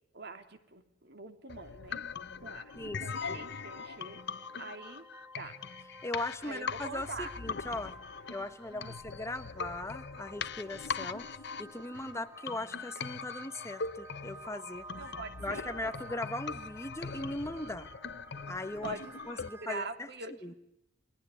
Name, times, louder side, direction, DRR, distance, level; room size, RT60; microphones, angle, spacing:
voice 1, 0.1-2.0 2.4-4.2 4.6-5.0 5.4-5.6 6.4-7.3 8.7-8.9 11.9-12.3 15.0-15.9 18.8-20.5, right 3 dB, 55° right, 8 dB, 2.9 m, -44 dB
sound 1, 1.5-19.5, left 5 dB, 60° left, 0.9 m, -41 dB
sound 2, 1.7-19.8, right 1 dB, 10° right, 1.5 m, -53 dB
voice 2, 2.8-3.5 6.0-7.9 8.3-11.3 11.6-14.9 15.4-17.9 18.5-19.0 19.3-20.1 20.4-20.5, left 2 dB, 15° left, 9 dB, 1.4 m, -39 dB
29.0 x 22.0 x 8.2 m, 0.81 s
head